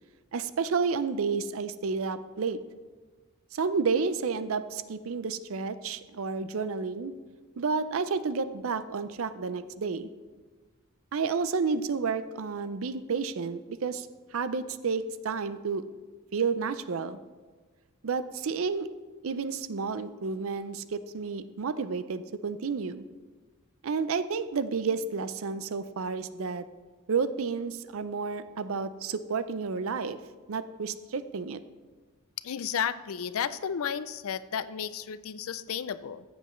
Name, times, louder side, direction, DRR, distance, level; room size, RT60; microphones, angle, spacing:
voice 1, 0.3-2.6 3.5-7.1 7.6-10.1 11.1-14.1 14.3-15.8 16.3-17.2 18.0-18.9 19.2-23.0 23.8-26.6 27.1-30.2 30.5-31.6, right 5 dB, 65° right, 13 dB, 0.5 m, -31 dB
voice 2, 32.4-36.2, left 8 dB, 70° left, 15 dB, 0.4 m, -33 dB
14.0 x 7.9 x 3.1 m, 1.4 s
head